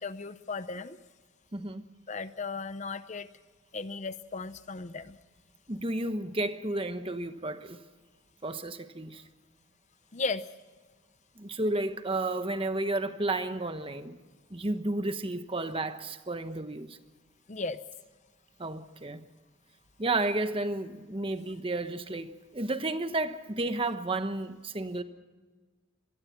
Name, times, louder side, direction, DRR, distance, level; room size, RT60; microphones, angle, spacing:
voice 1, 0.0-1.0 2.1-3.3 3.7-5.2 10.1-10.5 17.5-17.8, left 3 dB, 35° left, 0.7 m, -35 dB
voice 2, 1.5-1.9 5.7-7.8 8.4-9.2 11.4-14.2 14.5-17.0 18.6-19.3 20.0-25.0, right 2 dB, 25° right, 1.1 m, -32 dB
25.0 x 19.5 x 5.9 m
head